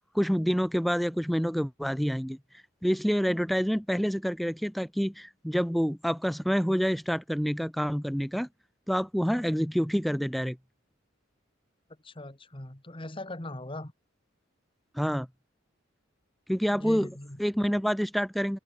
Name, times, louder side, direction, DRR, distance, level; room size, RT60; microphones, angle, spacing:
voice 1, 0.1-2.4 2.8-8.5 8.9-10.6 14.9-15.3 16.5-17.1 17.4-18.6, equal, ahead, 0.5 m, -27 dB
voice 2, 12.0-13.9 16.7-17.4, left 1 dB, 25° left, 1.8 m, -40 dB
head